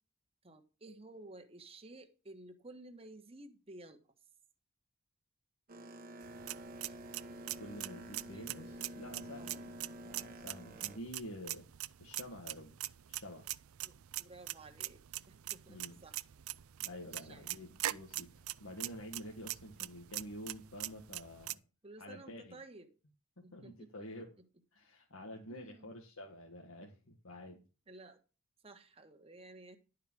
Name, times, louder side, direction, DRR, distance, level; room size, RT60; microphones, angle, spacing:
voice 1, 0.4-4.0 8.3-8.5 9.4-9.6 10.7-11.0 13.8-16.2 17.2-17.6 19.7-19.9 21.8-22.9 23.4-24.1 25.5-26.0 27.9-28.2 28.6-29.8, right 2 dB, 30° right, 5 dB, 1.3 m, -54 dB
Boat Water vehicle, 5.7-11.0, right 1 dB, 45° right, 1.1 m, -49 dB
sound 1, 6.2-21.5, right 15 dB, 85° right, 0.5 m, -43 dB
voice 2, 7.5-9.7 10.0-11.7 12.0-12.7 13.1-13.5 15.7-16.0 16.8-21.6 22.0-22.5 23.5-24.4 24.7-27.6, equal, 85° left, -1 dB, 1.7 m, -49 dB
11.0 x 4.9 x 6.2 m, 0.33 s
head